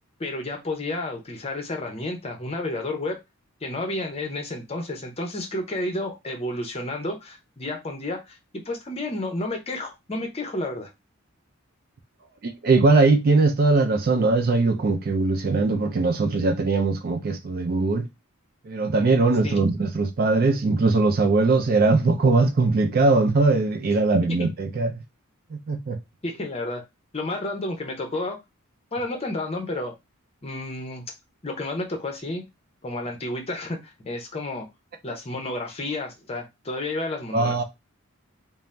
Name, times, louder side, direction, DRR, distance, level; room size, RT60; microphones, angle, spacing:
voice 1, 0.2-3.2 3.6-8.4 8.6-10.9 19.4-19.6 26.2-26.8 27.1-28.4 28.9-29.9 30.4-31.0 31.4-32.5 32.8-34.7 35.0-37.6, left 2 dB, 30° left, 0.6 m, -31 dB
voice 2, 12.4-18.1 18.6-25.0 25.5-26.0 37.3-37.6, right 3 dB, 45° right, 0.4 m, -21 dB
2.6 x 2.0 x 3.2 m
head